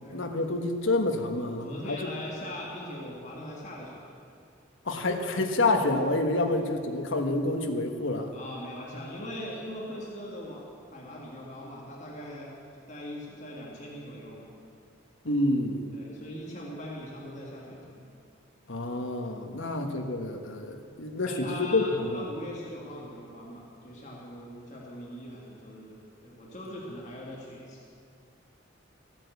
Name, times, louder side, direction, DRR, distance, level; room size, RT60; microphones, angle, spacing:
voice 1, 0.1-2.1 4.8-8.3 15.2-15.9 18.7-22.2, left 2 dB, 70° left, 4 dB, 1.3 m, -28 dB
voice 2, 1.6-4.1 6.5-6.6 8.3-10.7 10.9-12.5 12.9-14.5 15.9-18.1 19.6-19.8 21.3-27.8, left 1 dB, 35° left, -4 dB, 2.1 m, -41 dB
15.0 x 9.0 x 8.1 m, 2.4 s
head